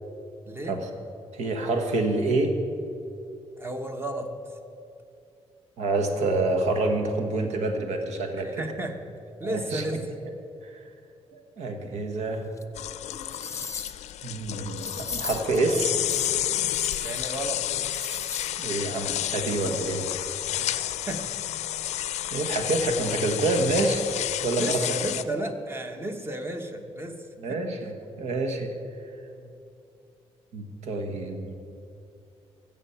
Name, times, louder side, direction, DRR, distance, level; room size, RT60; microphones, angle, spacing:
voice 1, 0.5-0.8 3.6-4.3 8.4-9.0 9.4-10.0 17.0-17.7 20.6-21.3 24.6-27.2 27.5-27.6 29.4-29.5, right 1 dB, 20° right, 6 dB, 1.1 m, -33 dB
voice 2, 1.3-2.5 5.8-8.6 9.4-9.8 10.7-10.8 11.3-12.5 14.2-16.0 18.6-20.0 22.3-24.0 24.4-24.8 25.3-25.4 27.4-28.7 30.5-31.5, right 2 dB, 85° right, 5 dB, 1.4 m, -27 dB
sound 1, 12.6-12.7 13.1-14.1 14.8-15.6 16.0-17.4 17.7-18.6 18.9-19.0, left 5 dB, 25° left, 0.6 m, -37 dB
Tap running, 12.8-25.2, left 12 dB, 85° left, 0.4 m, -31 dB
15.0 x 7.2 x 5.7 m, 2.6 s
cardioid pair, 120°, 11 cm